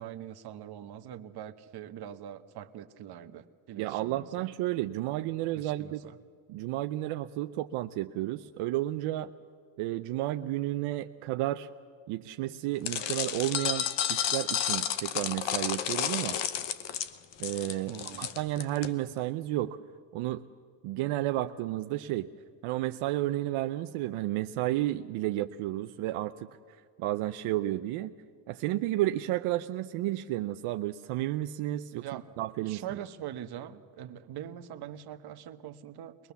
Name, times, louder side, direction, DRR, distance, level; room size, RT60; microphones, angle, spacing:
voice 1, 0.0-4.5 5.6-6.2 17.9-18.4 31.9-32.3 32.6-36.3, right 10 dB, 50° right, 8 dB, 1.1 m, -43 dB
voice 2, 3.8-6.0 6.5-9.3 9.8-11.7 12.1-16.4 17.4-19.8 20.1-20.4 20.8-22.3 22.6-28.1 28.5-32.1 32.4-32.8, right 15 dB, 75° right, 8 dB, 0.7 m, -32 dB
sound 1, 12.8-18.9, left 10 dB, 60° left, 1.1 m, -31 dB
22.0 x 21.0 x 7.0 m, 2.1 s
cardioid pair, 140°, 50 cm